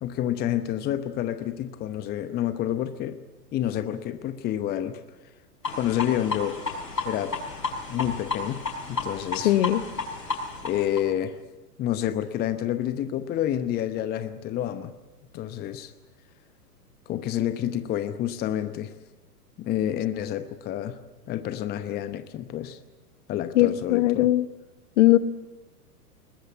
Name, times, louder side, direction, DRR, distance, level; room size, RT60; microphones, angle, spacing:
voice 1, 0.0-3.2 3.5-5.0 5.7-6.6 7.0-7.4 7.9-8.6 8.9-9.5 10.6-11.4 11.8-14.9 15.3-15.9 17.1-18.9 19.6-21.0 21.3-22.8 23.3-24.3, left 11 dB, 20° left, 11 dB, 0.9 m, -28 dB
sound 1, 5.6-11.0, left 3 dB, 90° left, 5.8 m, -32 dB
voice 2, 9.4-9.8 23.5-24.5 25.0-25.2, left 15 dB, 50° left, 13 dB, 1.4 m, -19 dB
21.0 x 20.5 x 8.4 m, 1.1 s
figure-of-eight pair, 110°, 48 cm